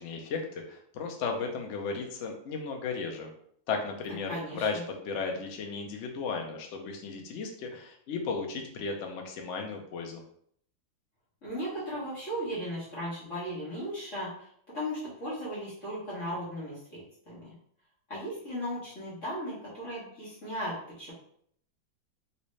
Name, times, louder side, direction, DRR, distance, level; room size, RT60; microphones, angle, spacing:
voice 1, 0.0-3.3 3.7-10.2, left 4 dB, 80° left, 2 dB, 0.6 m, -35 dB
voice 2, 4.3-4.8 11.4-14.5 14.7-17.5 18.1-21.1, equal, 45° left, -8 dB, 1.4 m, -36 dB
3.1 x 2.8 x 3.1 m, 0.64 s
omnidirectional pair, 2.0 m